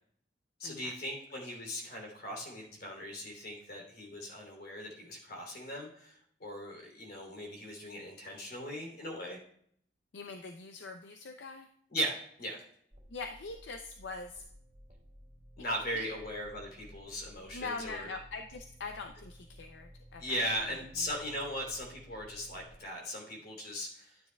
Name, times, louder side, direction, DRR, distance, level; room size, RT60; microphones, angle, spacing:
voice 1, 0.6-9.4 11.9-12.6 15.6-18.1 20.2-24.2, equal, 55° left, 0 dB, 3.0 m, -38 dB
voice 2, 10.1-11.7 13.1-14.4 15.9-16.1 17.5-20.5, left 4 dB, 80° left, 5 dB, 0.5 m, -42 dB
sound 1, 12.9-22.7, equal, 35° right, 2.1 m, -55 dB
12.0 x 9.2 x 2.3 m, 0.64 s
head